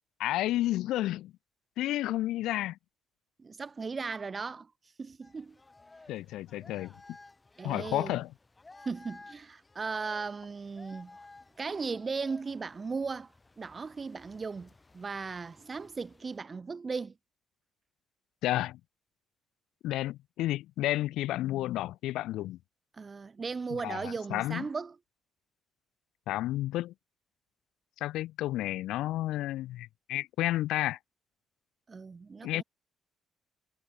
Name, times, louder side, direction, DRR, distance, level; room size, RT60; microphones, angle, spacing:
voice 1, 0.2-1.3 1.8-2.8 6.1-6.9 7.6-8.3 18.4-18.8 19.8-22.6 23.8-24.7 26.3-26.9 28.0-31.0 32.4-32.6, left 15 dB, 90° left, 0.7 m, -31 dB
voice 2, 3.4-4.7 5.0-5.6 7.6-8.2 8.8-11.2 11.6-13.3 13.6-17.2 22.9-25.0 31.9-32.6, right 4 dB, 30° right, 6.5 m, -37 dB
sound 1, 5.2-16.4, left 3 dB, 15° left, 5.6 m, -56 dB
cardioid pair, 120°, 0 cm